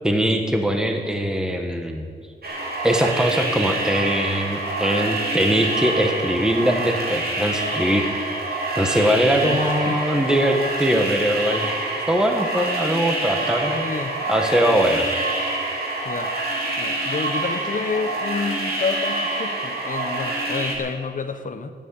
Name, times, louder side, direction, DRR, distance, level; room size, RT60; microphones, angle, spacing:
voice 1, 0.0-2.1 2.8-8.1 8.8-11.8 12.1-13.8 14.3-15.1, equal, 5° right, 3 dB, 1.3 m, -21 dB
sound 1, 2.4-20.8, right 2 dB, 60° right, 3.4 m, -26 dB
voice 2, 9.3-10.2 13.6-14.9 16.0-16.3 16.8-21.7, left 5 dB, 45° left, 8 dB, 1.0 m, -30 dB
15.0 x 9.3 x 8.6 m, 2.1 s
wide cardioid pair, 120°, 18 cm